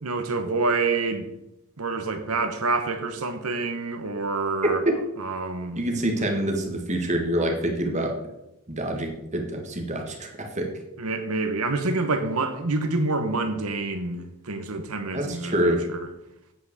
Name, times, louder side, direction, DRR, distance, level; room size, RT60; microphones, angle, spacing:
voice 1, 0.0-1.3 1.8-4.8 5.2-5.8 6.2-6.3 11.0-16.1, right 3 dB, 80° right, 1.3 m, -27 dB
voice 2, 5.8-8.1 8.7-10.7 15.1-15.8, right 1 dB, 30° right, 1.8 m, -26 dB
9.0 x 5.9 x 6.8 m
head